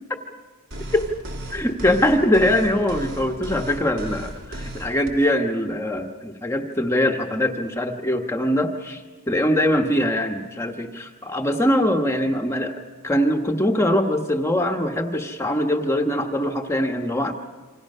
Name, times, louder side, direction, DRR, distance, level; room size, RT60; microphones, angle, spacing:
sound 1, 0.7-5.1, right 1 dB, 60° right, 3.3 m, -35 dB
voice 1, 1.5-9.0 9.3-12.8 13.0-17.3, left 1 dB, 10° left, 3 dB, 1.2 m, -22 dB
28.0 x 25.5 x 5.5 m, 1.4 s
head